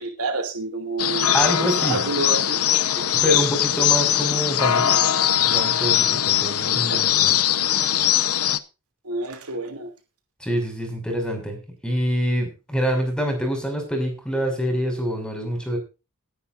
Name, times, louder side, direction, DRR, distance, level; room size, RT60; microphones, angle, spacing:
voice 1, 0.0-1.3 1.8-2.8 6.9-7.0 9.0-9.9, right 3 dB, 75° right, 5 dB, 2.9 m, -28 dB
sound 1, 1.0-8.6, left 10 dB, 75° left, 1.0 m, -21 dB
voice 2, 1.3-2.0 2.9-5.0 5.4-7.3 10.4-11.6 11.8-15.8, equal, 5° left, 4 dB, 6.1 m, -26 dB
20.0 x 10.5 x 2.6 m, 0.30 s
head